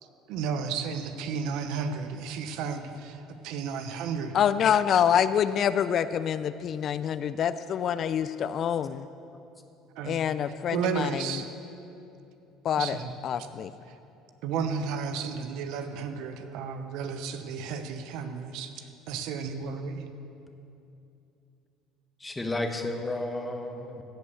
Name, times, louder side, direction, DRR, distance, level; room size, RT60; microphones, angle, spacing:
voice 1, 0.3-4.4 10.0-10.2 10.7-11.5 12.8-13.1 14.4-20.0, right 6 dB, 70° right, 8 dB, 0.8 m, -33 dB
voice 2, 4.3-9.1 10.0-11.2 12.6-13.0 13.2-13.7, left 8 dB, 50° left, 14 dB, 0.3 m, -26 dB
voice 3, 22.2-24.0, left 2 dB, 15° left, 6 dB, 1.1 m, -32 dB
16.0 x 5.4 x 7.0 m, 2.7 s
supercardioid pair, 90°, 0 cm